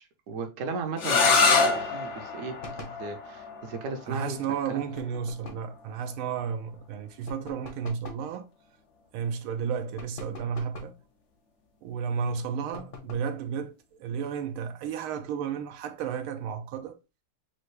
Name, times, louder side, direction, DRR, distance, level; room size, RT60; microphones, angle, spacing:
voice 1, 0.0-2.5 3.0-4.4 4.7-4.8, right 4 dB, 55° right, 0.9 m, -35 dB
sound 1, 1.0-6.7, left 4 dB, 85° left, 0.6 m, -27 dB
sound 2, 2.6-3.0 5.0-5.7 7.3-8.3 10.0-11.0 12.7-13.4, left 3 dB, 40° left, 0.7 m, -43 dB
voice 2, 4.1-8.5 9.1-11.0 11.8-13.7 14.0-17.0, right 7 dB, 80° right, 1.5 m, -32 dB
5.7 x 2.5 x 3.2 m
omnidirectional pair, 2.4 m